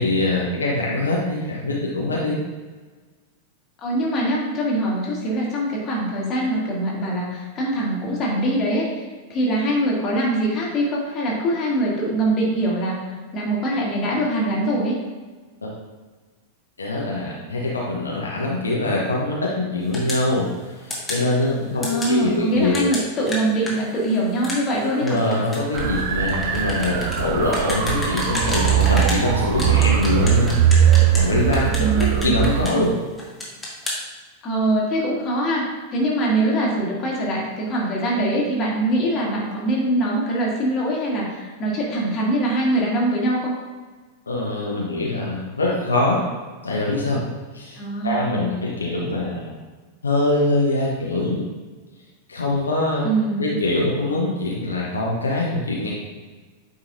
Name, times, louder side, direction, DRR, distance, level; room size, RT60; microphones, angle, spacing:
voice 1, 0.0-2.4 15.6-15.7 16.8-22.8 24.8-30.5 31.1-33.0 44.3-46.2 46.6-47.3 47.5-47.8 48.0-49.5 50.0-51.5 52.3-53.0 53.4-55.9, left 2 dB, 75° left, -3 dB, 1.0 m, -23 dB
voice 2, 3.8-12.9 13.3-14.9 21.8-25.2 31.8-32.3 34.4-35.6 35.9-43.5 47.8-48.4 53.0-53.6, right 1 dB, 30° left, -3 dB, 2.1 m, -23 dB
sound 1, 19.9-20.3 20.9-21.2 21.8-22.1 22.7-29.2 29.6-31.3 31.5-32.9 33.2-34.0, left 1 dB, 10° left, 1.9 m, -30 dB
sound 2, 25.7-32.7, right 9 dB, 50° right, 0.6 m, -20 dB
8.9 x 5.5 x 2.7 m, 1.4 s
figure-of-eight pair, 90°, 0 cm